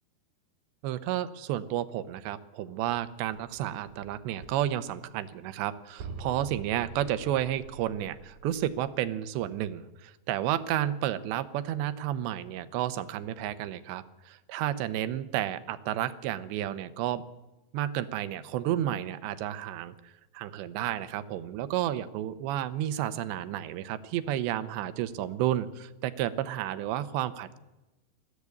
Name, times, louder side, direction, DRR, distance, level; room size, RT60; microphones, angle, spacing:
voice 1, 0.8-17.2 17.7-27.6, right 12 dB, 80° right, 13 dB, 3.2 m, -31 dB
sound 1, 3.0-4.2 4.4-5.4 5.7-5.8 6.0-8.9, right 5 dB, 50° right, 4.6 m, -45 dB
21.5 x 15.0 x 8.5 m, 1.1 s
omnidirectional pair, 5.1 m